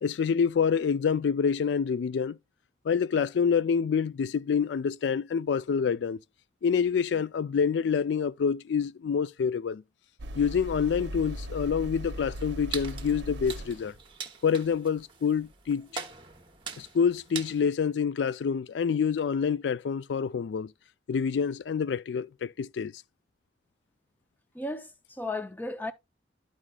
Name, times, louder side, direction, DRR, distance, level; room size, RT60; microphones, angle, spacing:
voice 1, 0.0-2.4 2.9-6.2 6.6-9.8 10.4-13.9 14.4-15.9 16.8-20.7 21.1-22.9, left 6 dB, 75° left, 0.3 m, -27 dB
sound 1, 10.2-13.9, equal, 75° right, 0.7 m, -38 dB
sound 2, 12.4-17.6, right 6 dB, 25° right, 0.9 m, -42 dB
voice 2, 24.5-25.9, left 2 dB, 10° left, 0.6 m, -35 dB
12.5 x 4.9 x 2.3 m
head